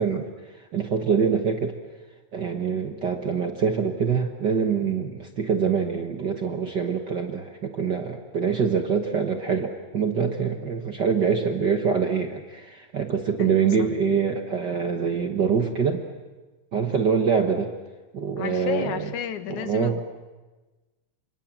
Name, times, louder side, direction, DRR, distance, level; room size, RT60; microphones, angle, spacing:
voice 1, 0.0-1.8 2.3-16.1 16.7-17.7 18.1-19.1 19.5-20.0, right 6 dB, 50° right, 5 dB, 1.4 m, -25 dB
voice 2, 13.4-13.9 18.4-20.0, left 9 dB, 75° left, 10 dB, 2.6 m, -32 dB
28.5 x 26.5 x 7.5 m, 1.2 s
omnidirectional pair, 3.5 m